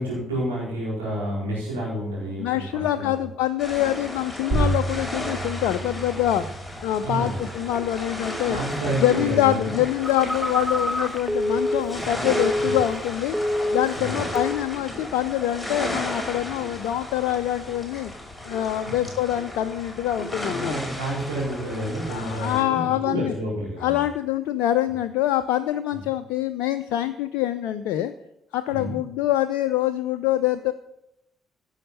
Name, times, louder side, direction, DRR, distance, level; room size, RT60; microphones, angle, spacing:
voice 1, 0.0-3.2 7.0-7.4 8.4-9.8 12.6-12.7 13.9-14.3 18.9-19.0 20.4-24.0 28.7-28.9, right 1 dB, 75° right, -5 dB, 4.5 m, -29 dB
voice 2, 2.3-6.4 6.8-8.6 9.0-13.4 13.7-18.1 18.4-20.7 22.1-23.3 23.8-28.1 28.5-30.7, left 13 dB, 65° left, 10 dB, 0.4 m, -25 dB
sound 1, 3.6-22.6, left 1 dB, 5° left, 5.2 m, -34 dB
sound 2, 4.5-9.6, right 2 dB, 40° right, 3.3 m, -31 dB
Telephone, 10.0-13.1 13.3-14.0 14.4-14.7, left 1 dB, 15° right, 0.9 m, -26 dB
16.0 x 6.5 x 5.4 m, 0.84 s
figure-of-eight pair, 40°, 0 cm